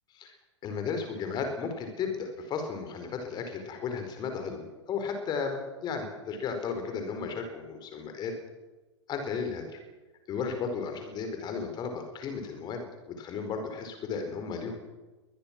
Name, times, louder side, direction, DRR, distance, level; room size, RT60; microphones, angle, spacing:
voice 1, 0.6-8.3 9.1-9.8 10.3-14.8, left 5 dB, 30° left, 6 dB, 4.6 m, -34 dB
23.5 x 20.5 x 6.1 m, 1.2 s
figure-of-eight pair, 100°, 15 cm